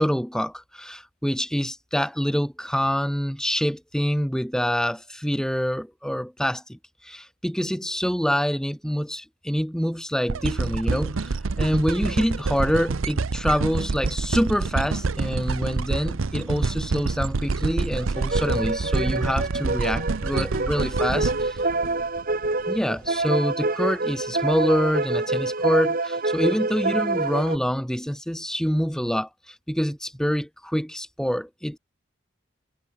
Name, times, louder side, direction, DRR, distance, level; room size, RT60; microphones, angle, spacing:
voice 1, 0.0-6.8 7.0-21.6 22.7-31.8, equal, 5° left, 3.2 m, -26 dB
sound 1, 10.3-22.5 23.0-23.1, right 3 dB, 85° right, 0.7 m, -27 dB
sound 2, 18.1-27.6, right 2 dB, 45° right, 2.2 m, -26 dB
head